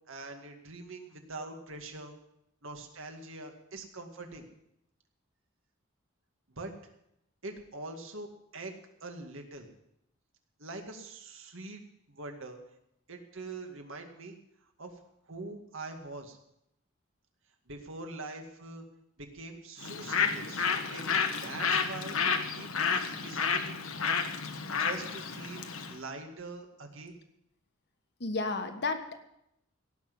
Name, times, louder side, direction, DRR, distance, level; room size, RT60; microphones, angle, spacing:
voice 1, 0.1-2.2 2.6-4.5 6.5-6.7 7.4-8.7 9.0-9.7 10.6-11.8 12.1-12.6 13.1-14.4 14.8-14.9 15.3-16.4 17.7-18.8 19.2-23.7 24.8-27.2, right 2 dB, 65° right, 4 dB, 2.2 m, -44 dB
Bird, 19.8-26.0, left 6 dB, 80° left, 1.4 m, -31 dB
voice 2, 28.2-29.2, left 3 dB, 55° left, 7 dB, 1.6 m, -32 dB
17.5 x 6.3 x 9.5 m, 0.81 s
head